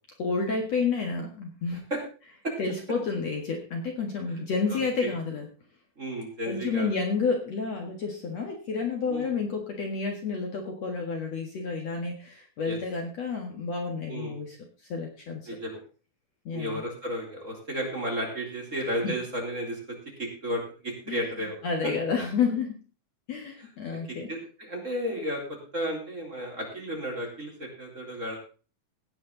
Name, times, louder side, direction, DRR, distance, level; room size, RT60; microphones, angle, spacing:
voice 1, 0.2-1.9 2.6-5.5 6.5-14.6 14.9-15.5 16.5-16.8 19.0-19.1 21.1-21.2 21.6-22.8 23.3-24.3, left 4 dB, 55° left, 2 dB, 2.6 m, -30 dB
voice 2, 4.7-5.1 6.0-6.9 9.1-9.3 12.6-12.8 14.1-14.4 15.5-15.8 16.5-19.8 20.2-21.9 24.3-28.4, equal, 20° right, -1 dB, 3.7 m, -33 dB
17.0 x 9.3 x 3.9 m, 0.36 s
omnidirectional pair, 4.1 m